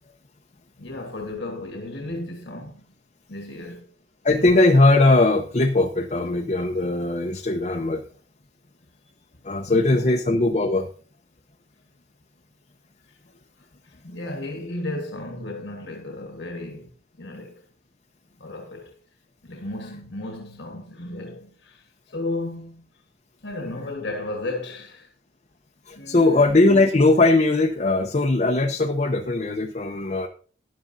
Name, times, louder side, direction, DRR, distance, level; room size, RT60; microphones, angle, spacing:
voice 1, 0.8-2.9 3.3-3.9 9.7-10.1 13.3-16.9 17.2-17.6 18.4-18.9 19.4-22.9 23.4-25.1 25.9-26.6, left 2 dB, 75° left, 1.4 m, -34 dB
voice 2, 4.2-8.0 9.4-10.9 25.9-30.3, left 2 dB, 35° left, 0.6 m, -19 dB
13.0 x 10.5 x 2.6 m
head